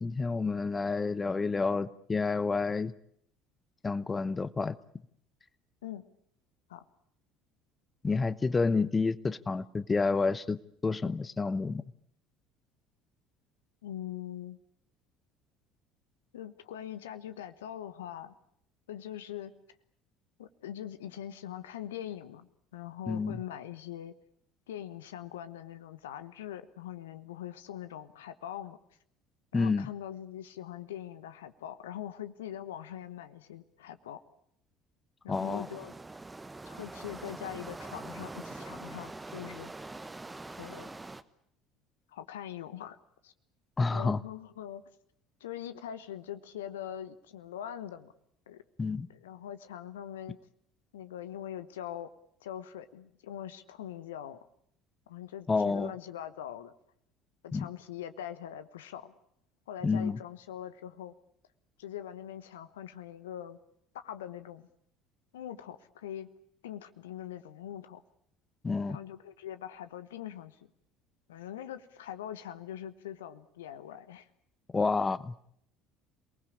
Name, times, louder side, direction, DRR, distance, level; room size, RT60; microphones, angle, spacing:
voice 1, 0.0-2.9 3.8-4.8 8.0-11.8 23.1-23.4 29.5-29.9 35.3-35.7 43.8-44.2 48.8-49.1 55.5-55.9 57.5-57.7 59.8-60.2 68.6-69.0 74.7-75.3, left 4 dB, 25° left, 16 dB, 0.9 m, -29 dB
voice 2, 13.8-14.6 16.3-18.3 18.9-19.5 20.4-24.1 24.7-28.8 29.5-34.2 35.2-35.9 36.6-39.7 40.6-40.9 42.1-43.0 43.2-43.3 43.9-44.8 45.4-48.1 48.5-48.6 49.1-50.4 50.9-52.1 52.4-54.4 55.1-56.7 57.4-59.1 59.7-61.1 61.8-63.6 63.9-64.7 65.3-66.3 66.6-68.0 68.9-70.6 71.3-74.3, left 10 dB, 75° left, 12 dB, 1.1 m, -42 dB
sound 1, 35.3-41.2, right 2 dB, 15° right, 1.2 m, -44 dB
27.5 x 19.5 x 8.6 m, 0.71 s
figure-of-eight pair, 60°, 0 cm